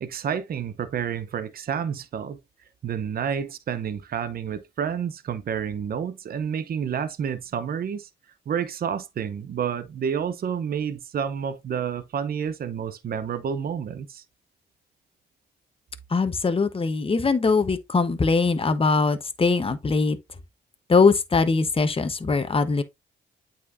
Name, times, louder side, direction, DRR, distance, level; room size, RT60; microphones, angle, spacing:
voice 1, 0.0-2.4 2.8-8.1 8.5-14.2, right 7 dB, 55° right, 0.7 m, -29 dB
voice 2, 16.1-20.2 20.9-22.8, left 4 dB, 30° left, 1.0 m, -21 dB
8.3 x 4.3 x 2.6 m
supercardioid pair, 65°, 18 cm